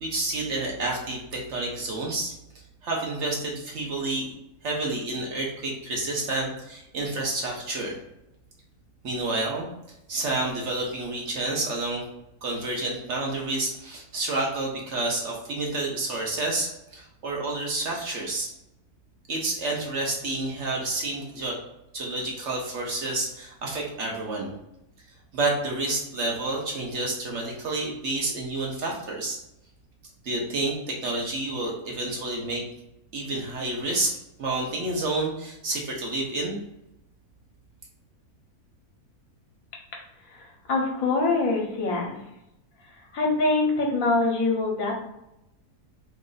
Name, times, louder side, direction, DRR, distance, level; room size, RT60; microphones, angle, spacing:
voice 1, 0.0-2.3 2.8-4.3 4.6-8.0 9.0-9.7 10.1-12.0 12.4-18.5 19.3-21.6 21.9-24.5 25.3-29.4 30.2-32.6 33.1-34.1 34.4-36.6, right 2 dB, 60° right, -1 dB, 1.0 m, -29 dB
voice 2, 40.2-42.2 42.8-44.9, left 3 dB, 70° left, -1 dB, 1.2 m, -25 dB
3.1 x 2.5 x 3.8 m, 0.86 s
omnidirectional pair, 1.5 m